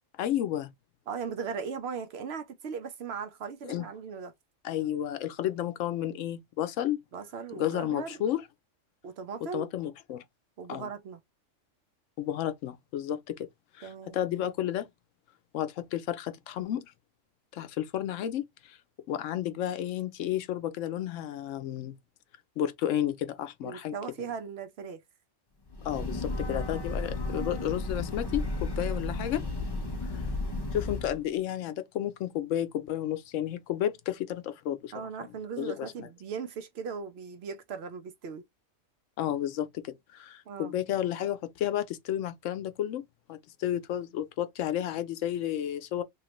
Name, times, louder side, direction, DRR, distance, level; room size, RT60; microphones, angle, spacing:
voice 1, 0.2-0.7 3.6-3.9 4.6-7.0 7.6-8.4 9.5-10.2 10.7-10.9 12.2-13.5 13.7-14.9 15.5-16.9 17.5-18.8 19.1-21.9 22.6-23.9 25.8-29.4 30.7-34.9 35.6-36.1 39.2-43.0 43.3-46.0, left 11 dB, 80° left, 0.9 m, -32 dB
voice 2, 1.1-4.3 7.1-8.2 9.0-9.7 10.6-11.2 13.8-14.2 23.6-25.0 34.9-38.4 40.5-40.7, right 6 dB, 65° right, 0.7 m, -38 dB
Breathing / Train, 25.7-31.2, left 2 dB, 35° left, 0.4 m, -33 dB
3.1 x 2.4 x 2.9 m
omnidirectional pair, 1.3 m